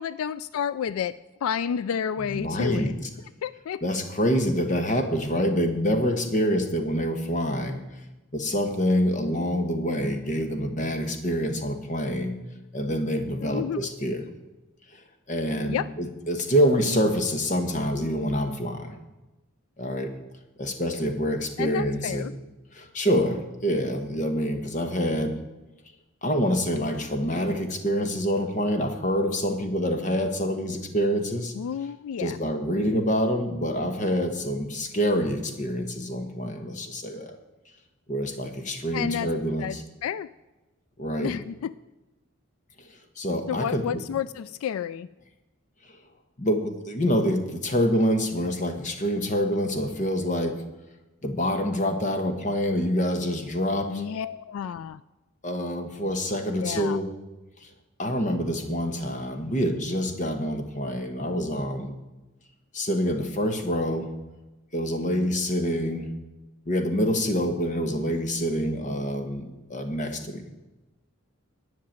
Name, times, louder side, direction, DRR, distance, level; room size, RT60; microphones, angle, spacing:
voice 1, 0.0-2.9 3.4-3.8 13.4-13.9 15.6-15.9 21.6-22.3 31.5-32.4 38.9-39.3 39.6-40.3 41.2-41.7 43.5-45.1 53.9-55.0 56.6-57.0, left 8 dB, 85° left, 16 dB, 0.3 m, -30 dB
voice 2, 2.3-2.9 3.8-7.8 8.3-12.4 12.7-14.2 15.3-18.9 19.8-20.1 20.6-22.3 22.7-25.3 26.2-31.5 32.2-37.4 38.1-39.8 41.0-41.3 43.2-44.0 46.4-50.6 51.2-54.0 55.4-57.1 57.6-57.7 58.0-61.9 62.7-64.1 64.7-66.1 66.7-70.4, equal, 35° left, 6 dB, 1.2 m, -26 dB
10.5 x 5.9 x 8.8 m, 1.1 s
head